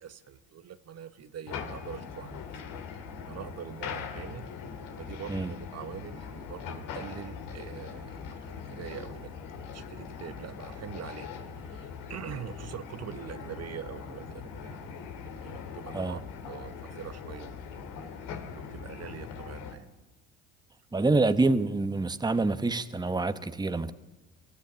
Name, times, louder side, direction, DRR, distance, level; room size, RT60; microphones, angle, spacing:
voice 1, 0.0-2.4 3.2-4.5 5.0-9.3 9.7-14.8 15.2-16.2 16.5-17.5 18.6-20.0, right 9 dB, 45° right, 1.1 m, -43 dB
sound 1, 1.5-19.7, left 6 dB, 70° left, 2.6 m, -41 dB
voice 2, 20.9-23.9, right 3 dB, 10° right, 1.2 m, -26 dB
23.5 x 14.0 x 9.7 m
hypercardioid pair, 60°, 34 cm